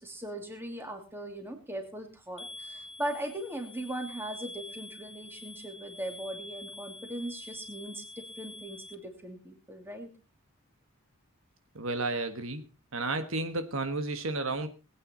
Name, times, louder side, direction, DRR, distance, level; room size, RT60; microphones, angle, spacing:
voice 1, 0.0-10.1, right 1 dB, 10° right, 4 dB, 2.7 m, -39 dB
sound 1, 2.4-8.9, left 2 dB, 30° left, 1.7 m, -46 dB
voice 2, 11.7-12.6 12.9-14.7, right 2 dB, 65° right, 8 dB, 1.5 m, -32 dB
20.5 x 9.1 x 4.4 m, 0.31 s
head